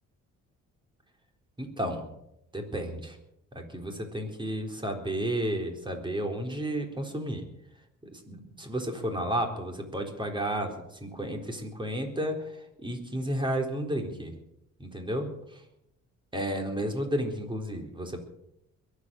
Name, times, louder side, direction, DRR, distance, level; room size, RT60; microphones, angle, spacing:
voice 1, 1.6-2.1 2.5-3.2 3.5-7.4 8.0-10.7 11.0-14.3 14.8-15.3 16.3-18.2, right 1 dB, 15° right, 3 dB, 4.0 m, -32 dB
22.0 x 8.4 x 7.7 m, 0.81 s
cardioid pair, 90°, 30 cm